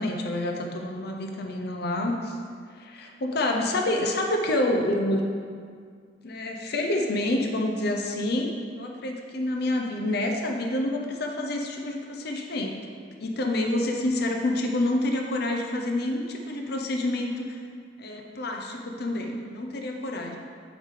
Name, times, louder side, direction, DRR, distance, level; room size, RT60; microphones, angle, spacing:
voice 1, 0.0-2.4 2.7-5.2 6.2-12.8 13.2-17.6 18.0-20.4, left 1 dB, 60° left, 2 dB, 0.7 m, -28 dB
8.9 x 4.9 x 3.7 m, 2.1 s
head